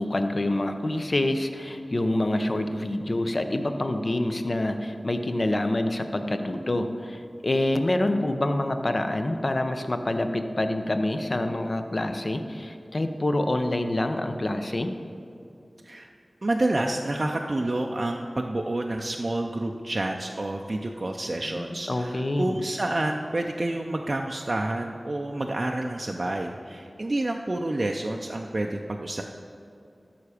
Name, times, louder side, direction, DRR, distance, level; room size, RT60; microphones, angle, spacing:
voice 1, 0.0-14.9 21.6-22.6, left 1 dB, 45° left, 7 dB, 0.7 m, -26 dB
voice 2, 16.4-29.2, right 1 dB, 45° right, 2 dB, 0.5 m, -29 dB
13.0 x 5.7 x 4.9 m, 2.6 s
wide cardioid pair, 60°, 0 cm